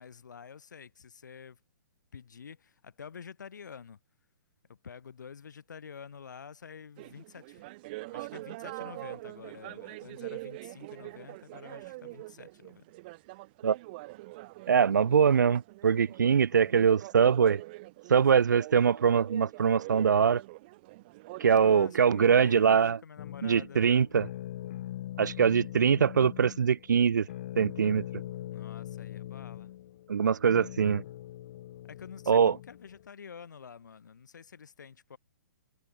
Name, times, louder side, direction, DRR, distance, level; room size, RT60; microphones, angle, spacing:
voice 1, 0.0-1.6 2.1-4.0 4.7-7.6 8.1-12.9 16.5-16.7 21.5-24.1 28.5-29.7 31.8-35.2, left 6 dB, 85° left, 4.4 m, -48 dB
sound 1, 7.0-22.9, right 21 dB, 35° right, 4.0 m, -44 dB
voice 2, 14.7-17.6 18.1-20.4 21.4-23.0 23.4-24.3 25.2-27.3 27.6-28.0 30.1-31.0 32.3-32.5, right 7 dB, 90° right, 1.3 m, -23 dB
sound 2, 23.2-33.1, left 13 dB, 45° left, 2.5 m, -42 dB
hypercardioid pair, 165°, 10 cm